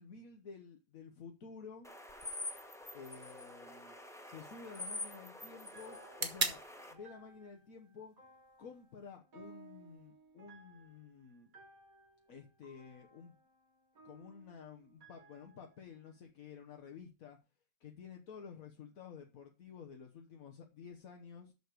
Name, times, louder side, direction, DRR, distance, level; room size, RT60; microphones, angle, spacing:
voice 1, 0.0-1.9 2.9-3.9 4.2-6.6 6.9-8.1 8.6-11.5 12.3-13.3 14.0-17.4 17.8-21.5, left 6 dB, 75° left, 3 dB, 1.5 m, -52 dB
sound 1, 1.8-6.9, left 2 dB, ahead, 1.0 m, -46 dB
sound 2, 2.1-10.1, right 3 dB, 35° right, 1.6 m, -45 dB
sound 3, 5.5-16.1, right 3 dB, 75° right, 2.4 m, -61 dB
6.9 x 6.5 x 6.7 m, 0.30 s
omnidirectional pair, 1.5 m